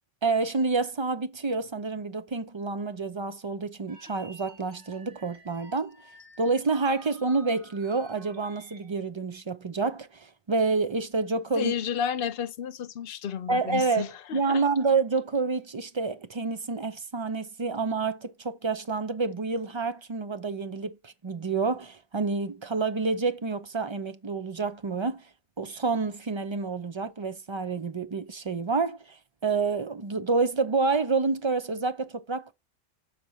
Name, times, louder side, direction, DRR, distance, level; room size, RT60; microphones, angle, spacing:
voice 1, 0.2-6.0 6.4-11.7 13.5-25.2 25.6-29.2 29.4-32.5, right 4 dB, 35° right, 0.4 m, -28 dB
sound 1, 3.9-9.0, right 2 dB, 75° right, 2.1 m, -51 dB
voice 2, 11.5-14.6, left 8 dB, 60° left, 0.9 m, -32 dB
6.6 x 4.1 x 4.7 m
omnidirectional pair, 1.2 m